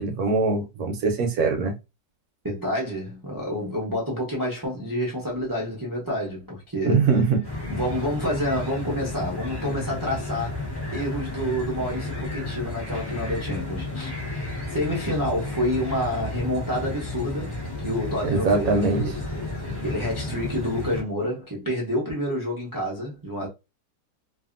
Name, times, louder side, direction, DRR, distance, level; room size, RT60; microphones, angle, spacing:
voice 1, 0.0-1.7 6.8-7.4 18.2-19.0, right 4 dB, 70° right, 1.0 m, -22 dB
voice 2, 2.4-7.1 7.7-19.2 19.8-23.5, equal, 35° right, 0.3 m, -28 dB
sound 1, 7.4-21.0, left 2 dB, 25° left, 0.5 m, -32 dB
2.6 x 2.4 x 2.4 m
omnidirectional pair, 1.8 m